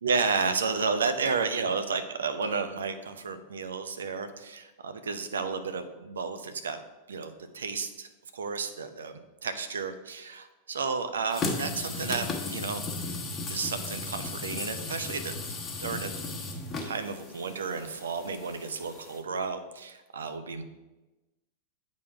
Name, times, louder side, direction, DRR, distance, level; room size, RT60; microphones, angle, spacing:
voice 1, 0.0-6.8 7.1-8.1 8.3-12.8 13.5-15.3 15.8-16.1 16.8-20.6, right 5 dB, 70° right, 9 dB, 0.7 m, -32 dB
sound 1, 11.3-19.2, left 3 dB, 25° left, 1.1 m, -36 dB
8.4 x 4.2 x 4.8 m, 1.1 s
figure-of-eight pair, 90°, 0 cm